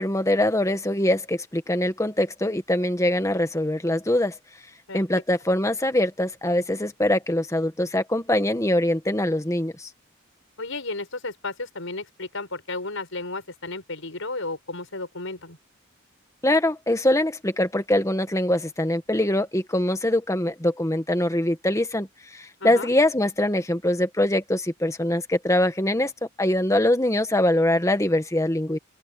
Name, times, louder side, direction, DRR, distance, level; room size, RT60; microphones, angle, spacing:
voice 1, 0.0-4.3 4.9-9.9 16.4-26.1 26.4-28.8, left 1 dB, 15° left, 1.5 m, -23 dB
voice 2, 10.6-15.6 22.6-22.9, left 3 dB, 65° left, 6.3 m, -33 dB
open air
head